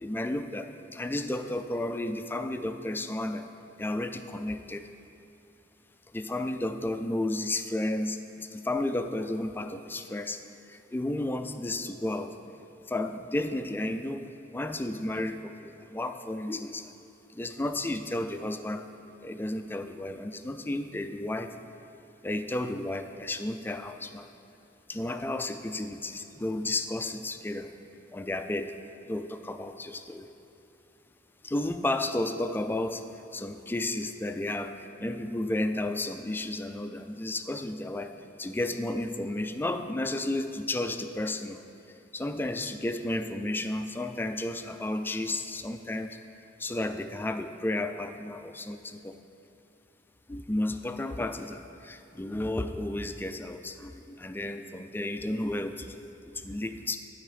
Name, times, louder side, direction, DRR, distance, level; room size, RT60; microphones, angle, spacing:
voice 1, 0.0-3.4 3.8-4.8 6.1-10.4 10.9-12.3 12.9-14.3 14.5-16.9 17.4-18.8 19.2-21.5 22.2-24.3 24.9-27.7 28.1-28.7 29.1-30.3 31.4-33.0 33.3-34.7 35.0-38.1 38.4-41.6 42.1-46.1 46.6-49.1 50.3-55.9 56.4-57.0, left 1 dB, 10° left, 8 dB, 0.3 m, -32 dB
12.0 x 4.8 x 4.9 m, 2.9 s
head